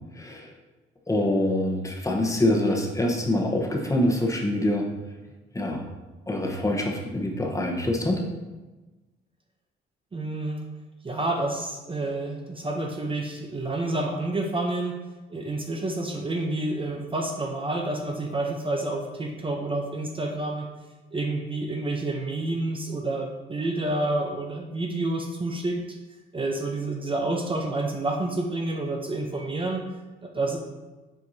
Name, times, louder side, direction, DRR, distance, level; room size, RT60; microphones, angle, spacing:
voice 1, 0.2-0.5 1.1-4.8 5.5-5.9 6.3-8.2, left 1 dB, 15° left, 0 dB, 1.1 m, -25 dB
voice 2, 10.1-10.7 11.0-15.0 15.3-20.7 21.1-25.8 26.3-29.8 30.2-30.6, right 2 dB, 25° right, 2 dB, 0.7 m, -29 dB
7.6 x 4.6 x 2.8 m, 1.2 s
cardioid pair, 90°, 20 cm